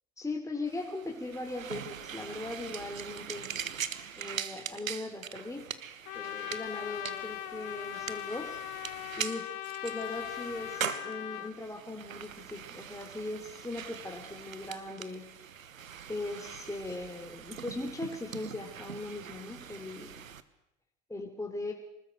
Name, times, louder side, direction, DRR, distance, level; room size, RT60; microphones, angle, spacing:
voice 1, 0.2-3.5 4.2-5.7 6.1-8.6 9.2-9.5 9.8-15.3 16.1-20.2 21.1-21.7, left 2 dB, 10° left, 0 dB, 3.7 m, -39 dB
sound 1, 0.7-20.4, right 8 dB, 80° right, 1.2 m, -42 dB
Trumpet, 6.0-11.5, left 13 dB, 50° left, 2.0 m, -39 dB
25.0 x 20.0 x 8.1 m, 0.84 s
figure-of-eight pair, 65°, 40 cm